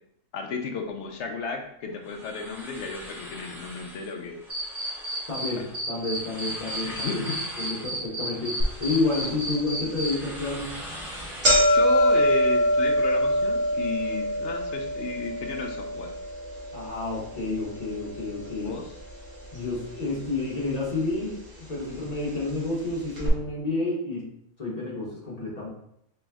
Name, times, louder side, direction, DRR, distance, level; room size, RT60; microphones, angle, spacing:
voice 1, 0.3-4.4 5.6-5.7 6.8-7.4 11.5-16.1 18.6-18.9, left 4 dB, 70° left, 3 dB, 0.8 m, -33 dB
sound 1, 1.9-12.1, equal, ahead, 0.8 m, -43 dB
Cricket, 4.5-5.5 5.7-10.1, right 1 dB, 20° right, 1.4 m, -32 dB
voice 2, 5.3-7.2 7.6-10.8 16.7-18.7 19.5-21.4 21.7-24.3 24.6-25.7, left 3 dB, 35° left, -4 dB, 1.1 m, -30 dB
sound 2, 8.6-8.7 9.2-9.3 10.2-10.4 10.7-10.8 11.1-19.3 19.5-20.3 21.1-21.2 22.1-22.2 22.5-22.6 23.2-23.3, equal, 60° right, 1.5 m, -25 dB
3.3 x 3.0 x 3.4 m, 0.74 s
omnidirectional pair, 1.3 m